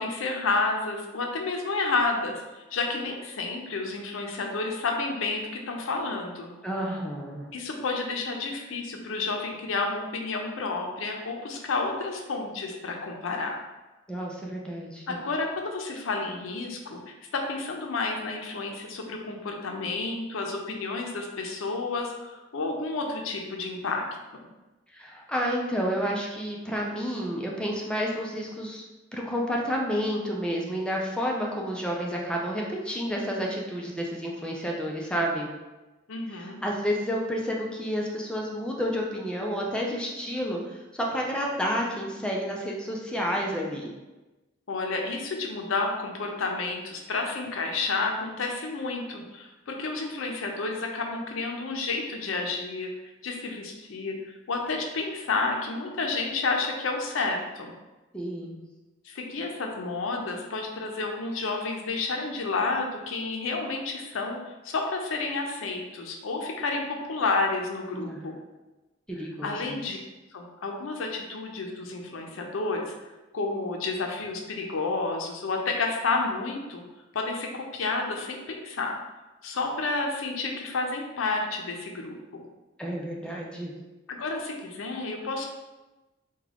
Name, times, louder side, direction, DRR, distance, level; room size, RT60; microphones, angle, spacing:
voice 1, 0.0-6.5 7.5-13.6 15.1-24.0 24.3-24.4 36.1-36.6 44.7-52.9 53.2-57.7 59.0-68.4 69.4-70.0 70.3-72.9 73.3-76.8 77.1-79.0 79.4-82.5 84.1-85.5, left 3 dB, 85° left, 2 dB, 0.5 m, -30 dB
voice 2, 6.6-7.5 14.1-15.2 24.9-28.8 29.1-35.5 36.3-43.9 58.1-58.6 67.9-68.3 69.1-69.5 82.8-83.7, equal, 5° left, -2 dB, 0.4 m, -30 dB
3.6 x 2.2 x 3.4 m, 1.1 s
head